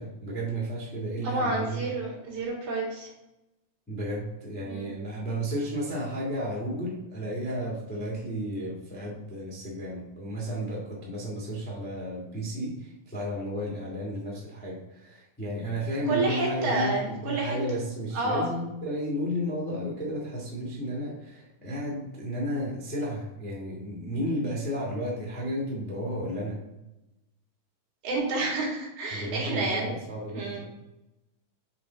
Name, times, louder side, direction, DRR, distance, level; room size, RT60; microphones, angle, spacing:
voice 1, 0.0-1.9 3.9-26.6 29.1-30.6, equal, 5° left, -5 dB, 0.7 m, -33 dB
voice 2, 1.2-3.1 4.6-4.9 16.1-17.6 18.1-18.5 28.0-29.9 30.3-30.7, right 2 dB, 60° right, -3 dB, 3.3 m, -29 dB
7.0 x 4.8 x 4.0 m, 0.95 s
omnidirectional pair, 4.2 m